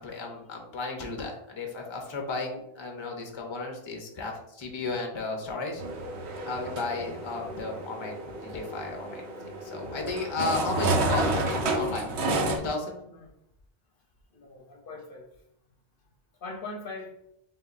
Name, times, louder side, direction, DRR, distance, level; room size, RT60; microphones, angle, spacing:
voice 1, 0.0-5.8 6.4-12.1 12.6-13.0, left 3 dB, 30° left, 0.7 m, -34 dB
sound 1, 5.8-12.6, right 2 dB, 90° right, 1.0 m, -30 dB
voice 2, 14.3-15.3 16.4-17.2, left 3 dB, 60° left, 0.8 m, -41 dB
6.8 x 2.6 x 2.5 m
omnidirectional pair, 1.1 m